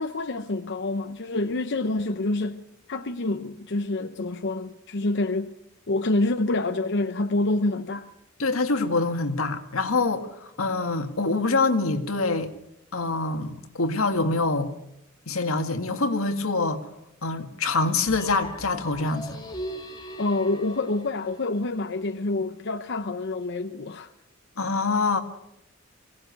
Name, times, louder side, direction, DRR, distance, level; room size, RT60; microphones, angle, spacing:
voice 1, 0.0-2.6 2.9-5.5 5.9-8.1 20.2-24.1, left 2 dB, 60° left, 0.8 m, -27 dB
voice 2, 8.4-12.5 12.9-14.7 15.3-16.8 17.2-19.4 24.6-25.2, left 3 dB, 85° left, 1.9 m, -25 dB
sound 1, 18.1-22.0, equal, 20° left, 1.9 m, -39 dB
23.0 x 17.5 x 8.2 m
head